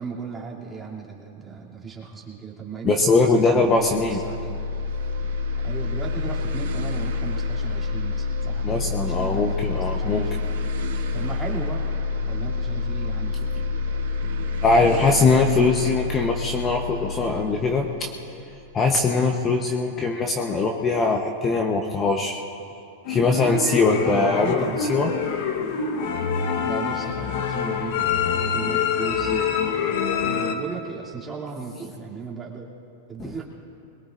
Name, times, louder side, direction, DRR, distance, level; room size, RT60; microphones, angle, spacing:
voice 1, 0.0-4.6 5.5-10.6 11.1-11.9 12.2-15.9 23.9-24.9 26.6-32.7 33.1-33.4, right 5 dB, 15° right, -5 dB, 2.9 m, -36 dB
voice 2, 2.8-4.2 8.6-10.3 14.6-18.4 18.7-22.4 23.1-25.1, left 3 dB, 25° left, 2 dB, 1.0 m, -21 dB
sound 1, 3.6-19.0, left 4 dB, 90° right, 2.3 m, -28 dB
sound 2, 23.1-30.5, left 6 dB, 60° left, 1.1 m, -25 dB
21.5 x 21.0 x 2.6 m, 2.7 s
hypercardioid pair, 125°, 0 cm